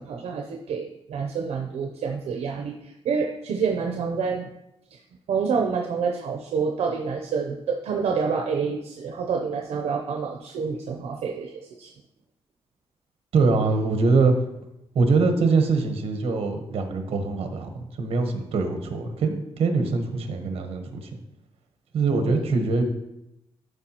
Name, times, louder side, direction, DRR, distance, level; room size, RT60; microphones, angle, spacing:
voice 1, 0.0-4.5 4.9-5.0 5.3-11.9 22.2-22.4, right 5 dB, 80° right, 2 dB, 0.7 m, -28 dB
voice 2, 13.3-14.3 14.9-21.1 21.9-22.8, right 4 dB, 65° right, 5 dB, 1.1 m, -23 dB
12.0 x 4.8 x 2.9 m, 0.86 s
wide cardioid pair, 170°, 11 cm